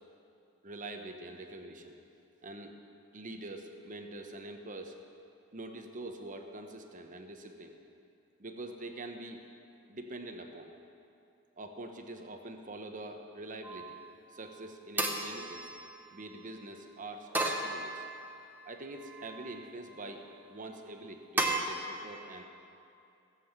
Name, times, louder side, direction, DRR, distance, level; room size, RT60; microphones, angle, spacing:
voice 1, 0.6-2.0 2.4-2.8 3.1-4.9 5.5-7.8 8.4-9.4 9.9-10.7 11.6-14.0 14.3-15.7 16.1-18.0 18.6-22.4, right 2 dB, 35° right, 5 dB, 1.0 m, -44 dB
sound 1, 13.6-14.1 15.0-16.3 17.3-18.4 19.0-19.6 21.4-21.6, right 2 dB, 10° right, 0.9 m, -35 dB
16.5 x 7.7 x 7.3 m, 2.6 s
head